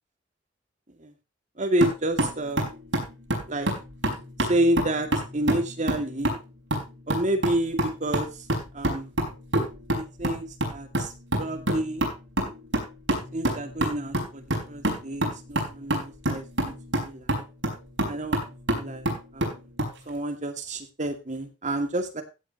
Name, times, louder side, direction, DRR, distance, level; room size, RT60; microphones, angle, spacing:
voice 1, 1.6-2.7 3.5-3.7 4.5-6.4 7.1-8.3 8.7-9.1 9.9-11.1 11.4-12.0 13.3-16.7 17.0-17.4 18.1-18.4 18.7-19.1 19.3-19.6 20.1-22.2, right 1 dB, 40° right, 5 dB, 2.4 m, -29 dB
sound 1, 1.8-20.0, right 1 dB, 70° right, 5.1 m, -29 dB
16.0 x 8.7 x 3.1 m, 0.28 s
head